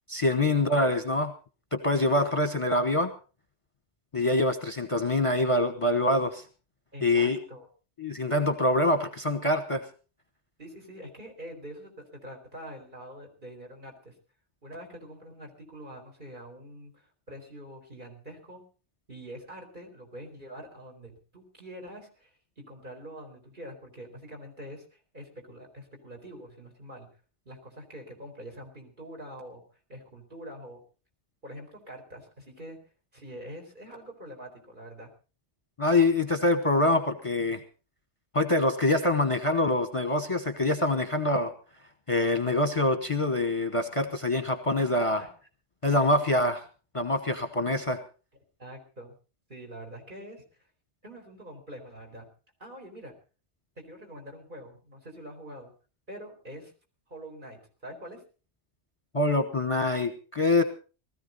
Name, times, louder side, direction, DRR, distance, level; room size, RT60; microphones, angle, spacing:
voice 1, 0.1-1.3 1.7-3.1 4.1-6.4 7.0-7.4 8.0-9.8 35.8-37.6 38.3-41.5 42.1-45.2 45.8-46.6 46.9-48.0 59.1-60.6, left 2 dB, 30° left, 7 dB, 1.2 m, -25 dB
voice 2, 6.9-7.7 10.6-14.1 14.6-18.6 19.1-27.1 27.5-29.6 29.9-30.8 31.4-32.8 33.1-35.1 44.7-45.3 46.0-46.2 48.6-49.1 49.5-50.4 51.0-52.3 52.6-53.1 53.8-55.7 56.1-56.7 57.1-58.2, equal, 45° right, 2 dB, 4.5 m, -45 dB
19.5 x 14.0 x 4.1 m, 0.37 s
omnidirectional pair, 1.2 m